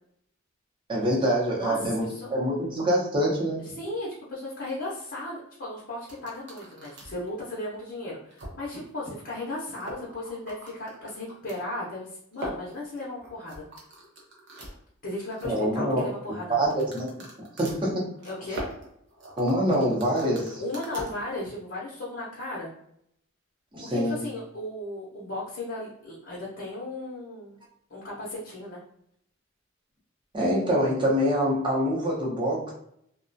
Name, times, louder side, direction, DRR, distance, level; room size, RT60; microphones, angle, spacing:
voice 1, 0.9-3.6 15.4-16.1 16.5-17.2 17.6-18.1 19.4-20.6 23.7-24.2 30.3-32.7, equal, 25° right, -4 dB, 0.7 m, -25 dB
voice 2, 1.6-2.3 3.6-13.6 15.0-16.7 18.2-18.6 20.6-22.7 23.9-27.6 27.9-28.8, left 1 dB, 50° left, -6 dB, 0.6 m, -36 dB
sound 1, 6.1-7.3 7.8-7.9 8.3-8.8 9.1-9.2 9.4-9.5 9.7-11.6 12.3-14.8 15.1-15.7 16.6-21.1, right 1 dB, 60° right, 0.7 m, -41 dB
2.3 x 2.1 x 2.5 m, 0.71 s
head